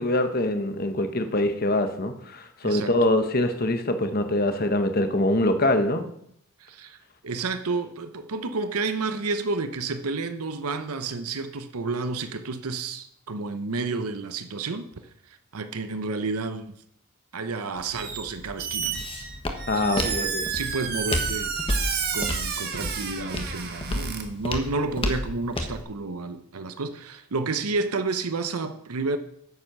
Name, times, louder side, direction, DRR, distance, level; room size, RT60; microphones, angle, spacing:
voice 1, 0.0-6.0 19.7-20.4, left 1 dB, 40° left, 7 dB, 1.0 m, -24 dB
voice 2, 6.6-7.0 7.2-14.9 15.3-16.7 17.3-19.0 19.7-21.8 22.1-29.2, right 3 dB, 85° right, 9 dB, 0.8 m, -30 dB
Walk footsteps, 17.8-25.8, left 1 dB, 25° left, 1.2 m, -32 dB
Squeak, 17.9-18.3 18.6-24.2, right 6 dB, 45° right, 1.4 m, -31 dB
9.6 x 7.8 x 6.0 m, 0.71 s
head